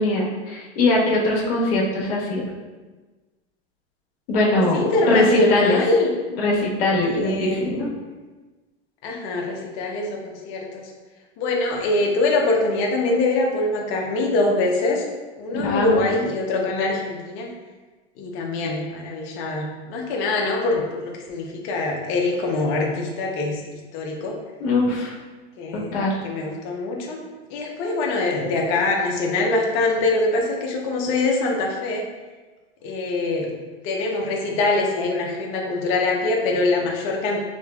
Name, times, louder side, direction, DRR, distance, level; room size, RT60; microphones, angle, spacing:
voice 1, 0.0-2.4 4.3-5.8 6.3-7.9 15.5-16.0 24.6-25.2 25.7-26.1, left 2 dB, 65° left, -3 dB, 1.3 m, -21 dB
voice 2, 4.5-6.1 7.1-7.6 9.0-10.9 11.4-15.0 15.4-17.5 18.2-23.6 23.9-24.3 25.6-26.0 26.2-27.2 27.5-32.0 32.8-33.5 33.8-37.4, left 2 dB, 40° left, 0 dB, 0.8 m, -23 dB
5.2 x 3.0 x 2.3 m, 1.3 s
supercardioid pair, 130°, 32 cm